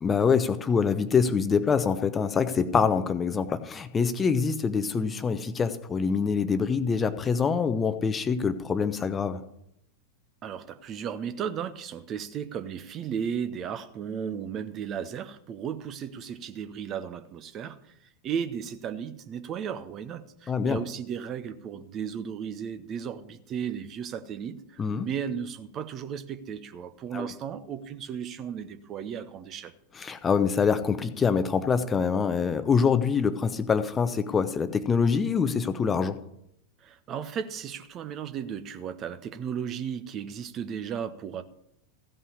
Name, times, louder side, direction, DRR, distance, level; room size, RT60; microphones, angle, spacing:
voice 1, 0.0-9.4 20.5-20.8 24.8-25.1 27.1-27.3 30.0-36.2, left 6 dB, 20° left, 12 dB, 0.7 m, -25 dB
voice 2, 10.4-17.9 18.2-29.7 36.8-41.4, right 8 dB, 30° right, 10 dB, 0.8 m, -35 dB
15.5 x 5.6 x 8.4 m, 0.77 s
figure-of-eight pair, 90°, 0 cm